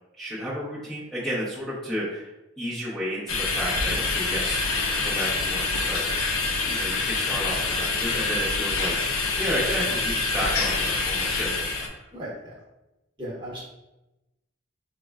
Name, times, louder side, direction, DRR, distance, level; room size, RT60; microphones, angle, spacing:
voice 1, 0.2-2.3 2.6-5.6 5.9-6.2 6.6-8.9 9.3-11.9, equal, ahead, -9 dB, 0.6 m, -32 dB
sound 1, 3.3-11.9, left 3 dB, 85° left, 0.5 m, -26 dB
voice 2, 13.2-13.6, right 1 dB, 25° right, -5 dB, 1.0 m, -35 dB
5.0 x 2.1 x 2.3 m, 0.97 s
head